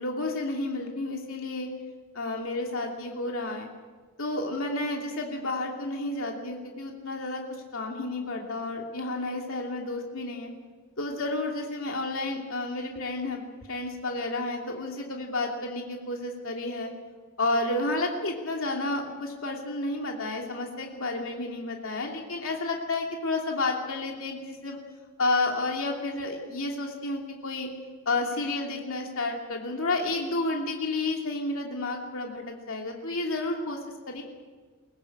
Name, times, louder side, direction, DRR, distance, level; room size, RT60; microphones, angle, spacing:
voice 1, 0.0-1.7 2.1-3.7 4.2-7.4 7.7-10.5 11.0-13.4 13.7-16.9 17.4-24.8 25.2-27.7 28.1-33.8 34.1-34.2, left 2 dB, 70° left, 1 dB, 2.8 m, -31 dB
23.0 x 19.0 x 8.6 m, 1.5 s
head